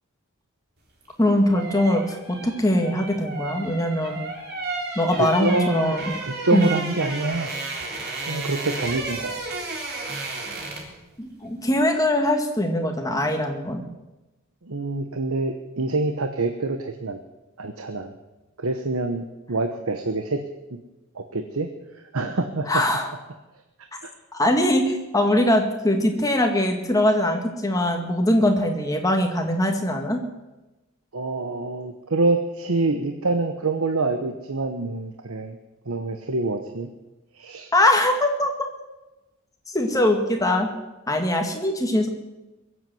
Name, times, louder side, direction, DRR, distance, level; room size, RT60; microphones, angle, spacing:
sound 1, 1.0-11.0 11.3-11.5, right 3 dB, 50° right, 3.4 m, -33 dB
voice 1, 1.2-4.2 5.0-6.1 6.5-6.7 11.2-13.8 22.7-23.1 24.3-30.2 37.7-38.7 39.7-40.7 41.1-42.1, left 1 dB, 15° left, 3 dB, 2.0 m, -22 dB
voice 2, 5.1-6.0 6.3-7.5 8.3-9.4 14.6-17.2 17.6-18.1 18.6-20.4 21.1-21.7 22.1-22.8 31.1-35.6 35.9-36.9 37.3-37.7, right 3 dB, 80° right, 6 dB, 1.1 m, -26 dB
22.5 x 8.1 x 7.8 m, 1.1 s
head